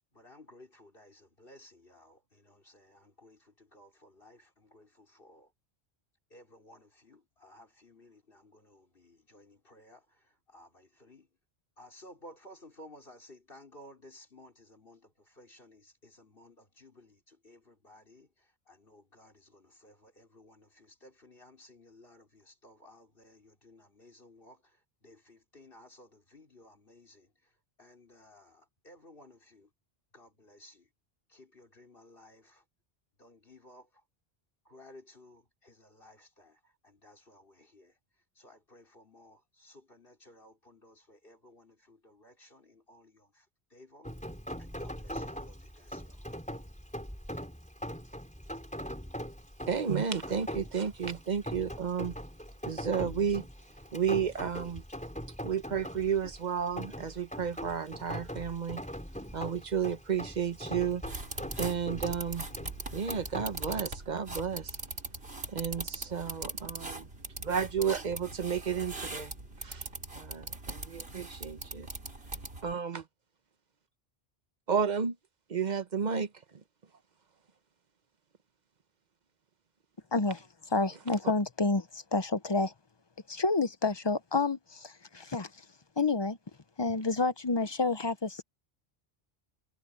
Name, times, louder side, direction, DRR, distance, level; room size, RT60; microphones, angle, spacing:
voice 1, 0.0-5.5 6.3-11.3 11.8-29.7 30.1-30.9 31.3-32.7 33.2-34.1 34.6-44.1 44.6-46.3, left 1 dB, 60° left, 5.2 m, -57 dB
Rain, 44.0-63.8, equal, 5° left, 4.1 m, -41 dB
voice 2, 49.7-52.1 52.7-53.4 53.9-54.8 55.4-58.8 59.3-61.0 61.6-62.4 62.9-64.7 65.5-67.1 67.4-69.3 69.6-69.8 70.2-71.9 72.6-73.0 74.7-75.1 75.5-76.3, right 7 dB, 45° right, 1.0 m, -32 dB
sound 1, 61.1-72.7, right 2 dB, 75° right, 3.8 m, -41 dB
voice 3, 80.1-82.7 83.3-85.7 86.0-86.4 86.8-88.4, left 3 dB, 25° left, 0.8 m, -29 dB
omnidirectional pair, 1.0 m